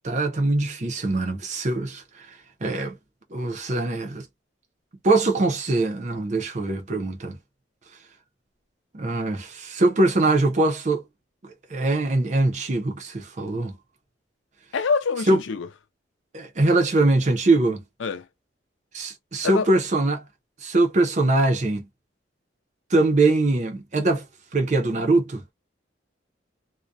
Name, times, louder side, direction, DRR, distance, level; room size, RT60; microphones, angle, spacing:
voice 1, 0.0-2.3 2.6-3.0 3.3-4.2 5.0-7.4 8.9-11.0 11.4-13.8 15.3-15.4 16.3-17.8 18.9-20.2 20.6-21.8 22.9-24.2 24.5-25.4, right 2 dB, 40° right, 0.6 m, -22 dB
voice 2, 14.7-15.7 18.0-18.2 19.4-19.7, left 5 dB, 85° left, 0.5 m, -25 dB
2.3 x 2.1 x 2.5 m
head